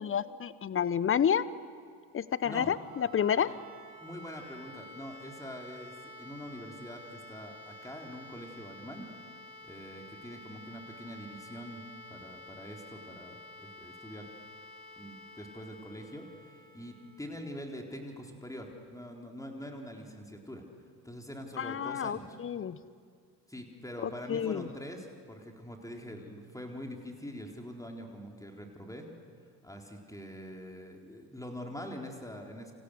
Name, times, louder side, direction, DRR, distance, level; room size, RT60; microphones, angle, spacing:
voice 1, 0.0-1.5 2.1-3.5 21.6-22.8 24.0-24.7, left 8 dB, 25° left, 18 dB, 0.9 m, -30 dB
voice 2, 2.4-2.7 3.4-3.6 4.0-9.1 9.6-11.8 12.1-14.3 15.0-20.6 21.0-22.4 23.5-29.1 29.6-32.7, equal, 5° left, 1 dB, 4.1 m, -44 dB
sound 1, 2.6-18.4, left 1 dB, 75° right, 6.1 m, -51 dB
28.5 x 27.5 x 6.5 m, 2.1 s
figure-of-eight pair, 50°, 50 cm